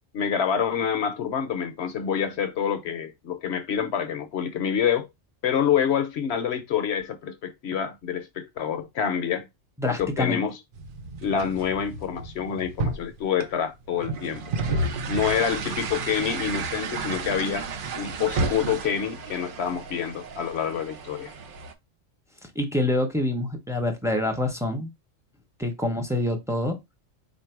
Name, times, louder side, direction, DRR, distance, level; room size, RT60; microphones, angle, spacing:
voice 1, 0.1-5.1 5.4-9.5 9.8-10.6 11.2-17.7 18.0-21.3, left 8 dB, 60° left, 0.8 m, -27 dB
voice 2, 9.8-10.4 22.4-24.9 25.6-26.8, left 1 dB, 5° right, 0.6 m, -26 dB
sound 1, 10.7-21.7, right 3 dB, 55° right, 0.7 m, -32 dB
4.3 x 2.6 x 4.4 m
omnidirectional pair, 1.3 m